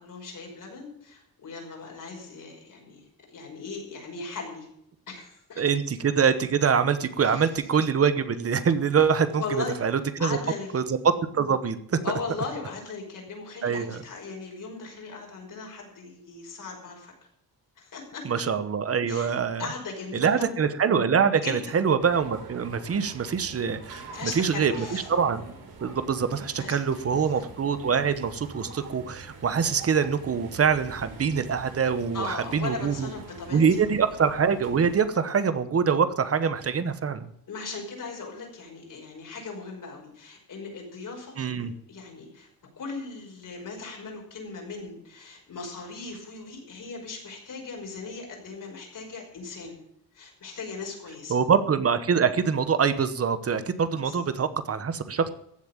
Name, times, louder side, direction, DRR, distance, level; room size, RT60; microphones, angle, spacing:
voice 1, 0.0-3.0 3.3-4.7 5.1-5.6 7.2-7.5 9.4-9.8 10.2-10.7 12.0-17.1 17.8-18.3 19.1-19.3 19.6-20.7 21.4-21.7 24.1-25.1 26.5-26.8 27.1-27.3 32.1-33.6 37.5-42.5 42.8-49.8 50.1-51.4 54.0-54.2, left 4 dB, 60° left, 0 dB, 5.6 m, -38 dB
voice 2, 5.6-10.4 10.7-11.0 11.3-12.0 13.6-14.0 18.2-19.7 20.1-25.5 25.8-33.1 33.5-37.2 41.4-41.7 51.3-55.3, right 6 dB, 40° right, 12 dB, 1.0 m, -24 dB
sound 1, 22.0-35.0, right 3 dB, 90° right, 3.8 m, -45 dB
15.0 x 7.4 x 8.9 m, 0.73 s
wide cardioid pair, 145°, 36 cm